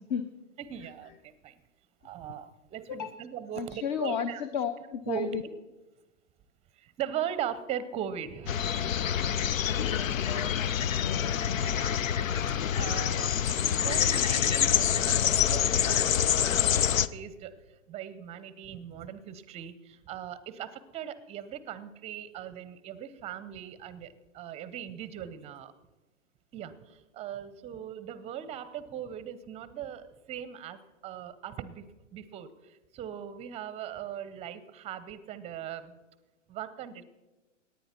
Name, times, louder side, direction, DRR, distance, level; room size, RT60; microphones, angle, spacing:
voice 1, 0.6-1.5 2.0-4.4 5.1-5.5 6.8-8.6 11.6-11.9 12.2-17.5 17.9-25.7 26.5-31.8 32.1-36.0 36.5-37.0, right 9 dB, 15° right, 15 dB, 0.6 m, -39 dB
voice 2, 3.6-5.4 9.7-11.6, left 8 dB, 35° left, 11 dB, 0.6 m, -34 dB
sound 1, 8.5-17.1, left 9 dB, 90° left, 0.6 m, -26 dB
18.0 x 9.6 x 4.4 m, 1.1 s
hypercardioid pair, 125°, 38 cm